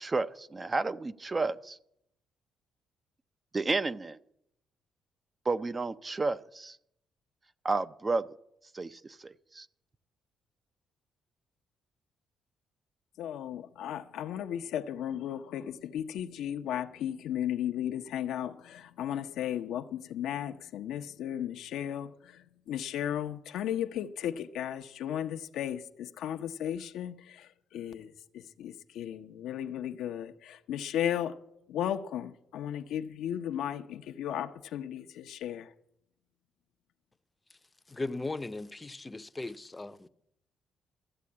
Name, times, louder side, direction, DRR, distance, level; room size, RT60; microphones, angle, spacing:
voice 1, 0.0-1.8 3.5-4.2 5.5-6.8 7.6-8.3 8.7-9.7, right 3 dB, 25° right, 0.5 m, -31 dB
voice 2, 13.2-31.3 31.7-35.7, left 10 dB, 85° left, 0.7 m, -35 dB
voice 3, 37.9-40.1, left 2 dB, 20° left, 0.6 m, -37 dB
13.5 x 7.7 x 8.4 m
cardioid pair, 90°, 0 cm